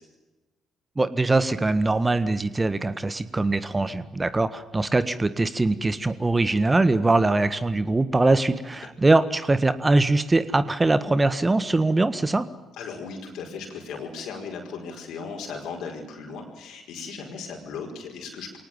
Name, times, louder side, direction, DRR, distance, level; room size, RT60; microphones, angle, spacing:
voice 1, 0.9-12.4, right 2 dB, 25° right, 13 dB, 1.6 m, -22 dB
voice 2, 12.8-18.6, left 5 dB, 70° left, 2 dB, 5.2 m, -37 dB
23.5 x 18.5 x 9.3 m, 1.1 s
hypercardioid pair, 50°, 0 cm